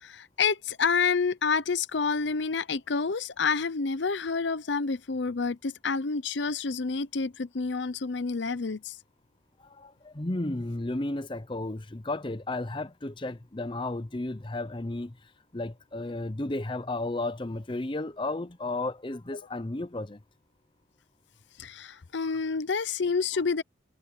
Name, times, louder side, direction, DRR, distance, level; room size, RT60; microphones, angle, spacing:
voice 1, 0.0-9.0 21.6-23.6, left 5 dB, 70° left, 0.7 m, -28 dB
voice 2, 9.8-15.1 15.5-20.2, left 2 dB, 25° left, 0.7 m, -33 dB
head